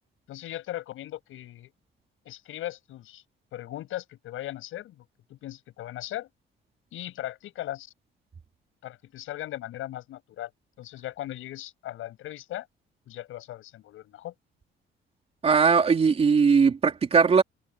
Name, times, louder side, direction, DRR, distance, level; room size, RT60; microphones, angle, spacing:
voice 1, 0.3-1.7 2.2-3.2 3.5-5.0 5.3-6.3 6.9-7.9 8.8-10.5 10.8-12.7 13.1-14.3, left 14 dB, 85° left, 7.6 m, -38 dB
voice 2, 15.4-17.4, right 5 dB, 30° right, 4.0 m, -19 dB
cardioid pair, 170°, 21 cm